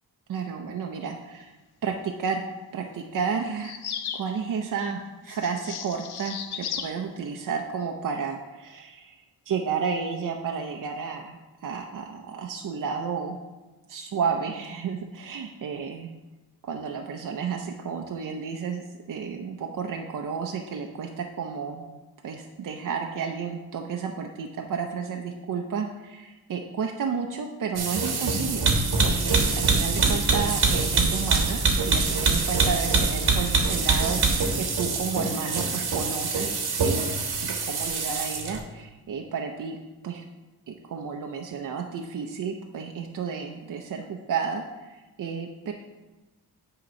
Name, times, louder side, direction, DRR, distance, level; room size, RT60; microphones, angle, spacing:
voice 1, 0.3-1.5 1.8-2.4 2.7-3.7 4.1-13.4 13.9-16.1 16.6-22.0 22.2-28.7 29.0-37.1 37.4-39.8 40.0-40.2 40.7-45.7, right 6 dB, 55° right, 2 dB, 0.6 m, -32 dB
sound 1, 3.6-4.3 5.3-6.9, left 8 dB, 80° left, 0.6 m, -35 dB
sound 2, 27.8-38.6, right 4 dB, 80° right, 1.2 m, -24 dB
8.6 x 2.9 x 5.1 m, 1.1 s
cardioid pair, 85°, 38 cm